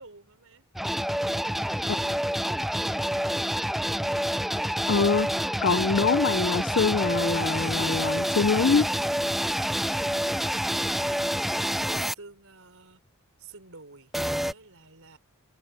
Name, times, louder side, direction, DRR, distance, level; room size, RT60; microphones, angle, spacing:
voice 1, 0.0-3.4 11.9-13.0 13.4-14.1 14.4-15.2, right 3 dB, 65° right, 4.8 m, -51 dB
sound 1, 0.8-12.1 14.1-14.5, equal, ahead, 0.4 m, -27 dB
voice 2, 4.9-5.3 5.6-8.9, left 5 dB, 55° left, 0.5 m, -24 dB
head